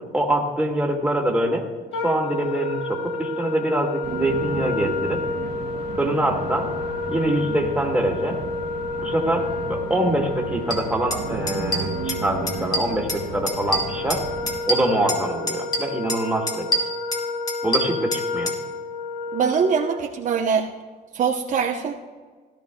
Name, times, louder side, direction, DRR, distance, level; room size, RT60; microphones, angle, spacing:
voice 1, 0.1-1.6 2.0-5.2 6.0-6.7 7.1-8.4 9.0-14.2 14.7-16.7 17.6-18.6, right 1 dB, 5° right, 0 dB, 2.0 m, -24 dB
Wind instrument woodwind instrument, 1.9-20.0, left 3 dB, 85° left, 1.1 m, -31 dB
sound 1, 4.0-14.6, right 4 dB, 70° right, 1.7 m, -34 dB
sound 2, 10.7-10.8 11.1-11.2 11.5-12.2 12.5-13.2 13.5-15.2 15.5-16.2 16.5-18.6, equal, 25° left, 2.0 m, -26 dB
voice 2, 19.3-20.7 21.1-21.9, right 6 dB, 50° right, 2 dB, 0.8 m, -22 dB
17.0 x 12.0 x 2.3 m, 1.5 s
cardioid pair, 110°, 17 cm